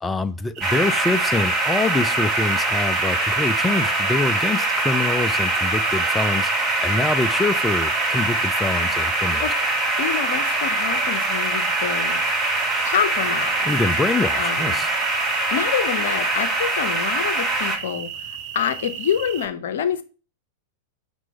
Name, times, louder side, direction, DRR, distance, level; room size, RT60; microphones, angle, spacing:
voice 1, 0.0-6.5 6.8-9.5 13.6-14.9, left 3 dB, 10° left, 0.4 m, -25 dB
sound 1, 0.6-17.8, right 2 dB, 15° right, 1.7 m, -23 dB
sound 2, 0.6-19.5, right 9 dB, 45° right, 0.7 m, -35 dB
voice 2, 10.0-12.2 12.8-13.7 14.3-14.8 15.3-20.0, left 8 dB, 60° left, 0.7 m, -27 dB
6.1 x 3.1 x 5.5 m
figure-of-eight pair, 95°, 0 cm